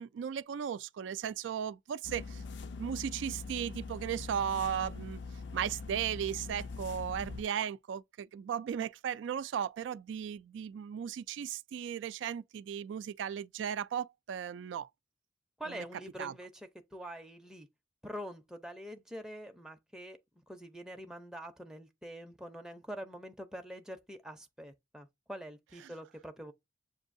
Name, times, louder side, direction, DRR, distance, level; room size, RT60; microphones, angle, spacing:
voice 1, 0.0-2.4 2.8-5.2 5.5-14.9 15.7-15.8 16.2-16.3, right 8 dB, 75° right, 0.3 m, -36 dB
sound 1, 2.0-7.4, left 4 dB, 65° left, 0.5 m, -43 dB
voice 2, 15.6-17.7 18.0-20.2 20.5-26.5, equal, 5° right, 0.5 m, -45 dB
7.0 x 2.6 x 2.5 m
head